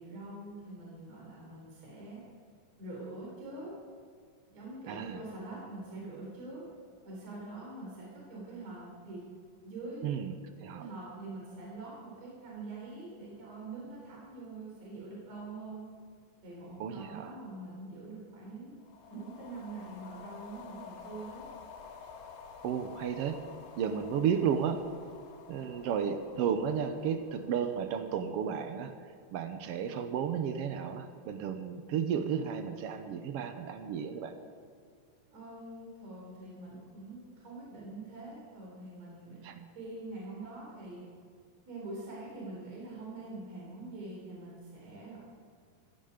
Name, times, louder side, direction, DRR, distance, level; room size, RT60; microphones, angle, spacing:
voice 1, 0.0-2.2 2.8-3.7 4.5-6.6 7.0-9.2 9.6-10.0 10.7-15.9 16.4-18.7 19.1-21.4 35.3-39.4 39.7-41.1 41.7-45.2, right 2 dB, 50° right, -4 dB, 4.8 m, -44 dB
voice 2, 4.9-5.2 10.0-10.9 16.8-17.3 22.6-23.4 23.8-24.8 25.5-28.9 29.3-34.3 39.4-39.7, right 7 dB, 85° right, 7 dB, 1.3 m, -33 dB
sound 1, 18.8-28.3, left 6 dB, 85° left, 3.3 m, -50 dB
15.5 x 15.0 x 5.2 m, 2.2 s
omnidirectional pair, 3.9 m